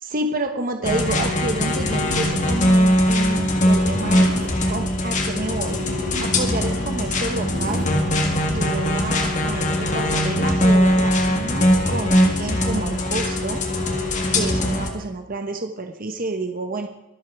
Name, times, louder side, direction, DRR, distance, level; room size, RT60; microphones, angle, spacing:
voice 1, 0.0-5.8 6.2-7.9 8.5-13.6 14.3-16.9, right 2 dB, 40° right, 6 dB, 1.1 m, -29 dB
sound 1, 0.8-14.9, left 1 dB, 35° left, 2.0 m, -21 dB
sound 2, 1.6-2.3 3.9-4.5 5.7-6.4 7.3-7.9, right 1 dB, 65° right, 6.0 m, -34 dB
23.5 x 8.3 x 4.7 m, 0.90 s
head